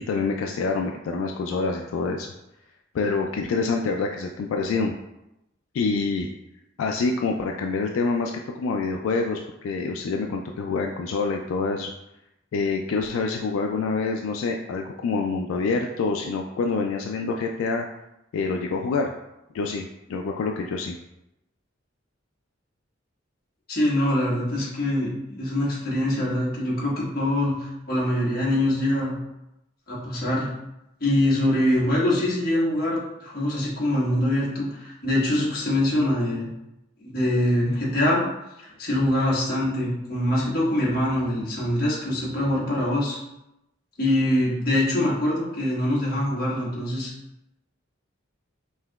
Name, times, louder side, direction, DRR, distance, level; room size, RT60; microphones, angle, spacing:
voice 1, 0.0-2.3 2.9-4.9 5.7-6.3 6.8-11.9 12.5-17.9 18.3-19.1 19.5-20.9, left 4 dB, 85° left, 3 dB, 0.3 m, -26 dB
voice 2, 23.7-29.2 29.9-30.5 31.0-36.5 37.0-38.2 38.6-43.2 44.0-47.1, left 1 dB, 50° left, -6 dB, 1.4 m, -24 dB
5.4 x 2.9 x 2.3 m, 0.89 s
head